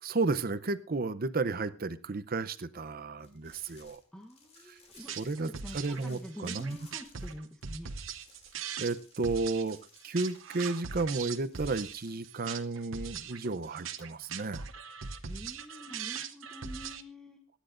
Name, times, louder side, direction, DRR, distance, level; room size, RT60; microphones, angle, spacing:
voice 1, 0.0-4.0 4.7-4.8 5.2-6.8 8.8-9.8 10.0-14.6, right 3 dB, 50° right, 14 dB, 0.7 m, -33 dB
sound 1, 3.2-7.6 7.9-12.3, left 3 dB, 35° left, 2.7 m, -60 dB
voice 2, 4.1-5.1 5.5-7.9 14.6-14.7 15.2-17.4, equal, 5° left, 2 dB, 1.0 m, -47 dB
sound 2, 4.9-17.0, right 7 dB, 80° right, 0.9 m, -41 dB
24.5 x 10.0 x 2.6 m, 0.35 s
head